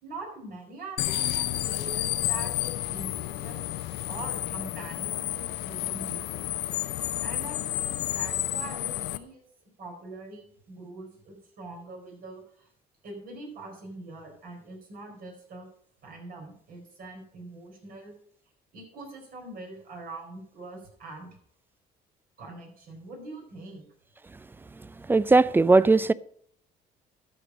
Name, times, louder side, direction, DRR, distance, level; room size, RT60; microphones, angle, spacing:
voice 1, 0.0-6.4 7.2-9.5 9.8-12.7 13.0-15.7 16.0-18.1 18.7-21.3 22.4-23.9, right 2 dB, 60° right, 4.5 m, -43 dB
sound 1, 1.0-9.2, left 15 dB, 80° left, 0.6 m, -31 dB
voice 2, 24.7-26.1, right 3 dB, 10° right, 0.3 m, -20 dB
12.5 x 5.2 x 6.2 m
cardioid pair, 110°, 17 cm